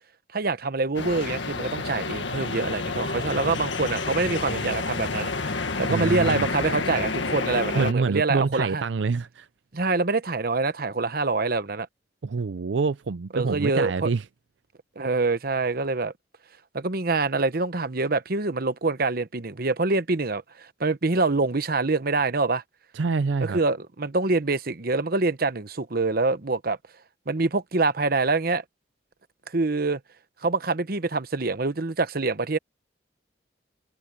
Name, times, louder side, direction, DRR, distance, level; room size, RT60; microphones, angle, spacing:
voice 1, 0.3-8.8 9.7-11.9 13.3-14.1 15.0-16.1 16.7-22.6 23.4-26.8 27.3-28.6 29.5-30.0 30.4-32.6, right 3 dB, 55° right, 1.0 m, -25 dB
sound 1, 0.9-7.9, left 3 dB, 85° left, 1.9 m, -29 dB
voice 2, 5.9-6.5 7.7-9.5 12.2-14.2 22.9-23.6, right 4 dB, 80° right, 0.5 m, -26 dB
head